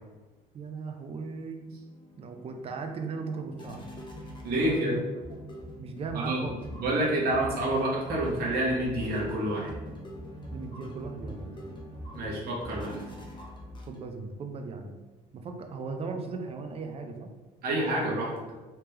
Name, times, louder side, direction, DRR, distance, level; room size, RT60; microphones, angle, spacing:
voice 1, 0.5-1.7 2.2-3.8 4.6-5.0 5.8-6.6 10.5-11.7 13.9-15.0 15.3-17.3, right 4 dB, 35° right, 5 dB, 0.5 m, -37 dB
sound 1, 1.6-14.3, equal, 25° left, 0.8 m, -43 dB
voice 2, 4.4-4.9 6.2-6.4 6.8-9.7 12.1-13.0 17.6-18.3, right 1 dB, 65° right, -4 dB, 1.4 m, -28 dB
3.4 x 2.9 x 3.3 m, 1.3 s
cardioid pair, 110°, 17 cm